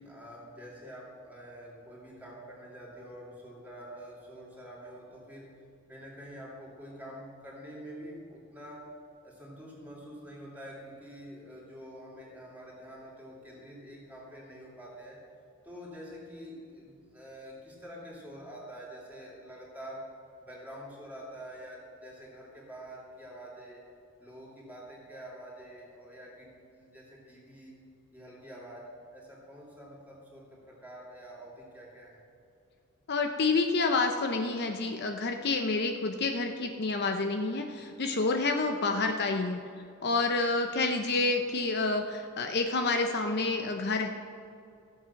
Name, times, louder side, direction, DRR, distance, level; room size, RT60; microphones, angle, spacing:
voice 1, 0.0-5.5 5.9-8.9 9.2-15.2 15.6-20.1 20.4-23.8 24.2-27.8 28.1-32.2, equal, 5° right, -4 dB, 2.9 m, -47 dB
voice 2, 33.1-39.6 40.0-44.1, left 3 dB, 50° left, 5 dB, 0.7 m, -28 dB
15.0 x 7.6 x 5.9 m, 2.4 s
head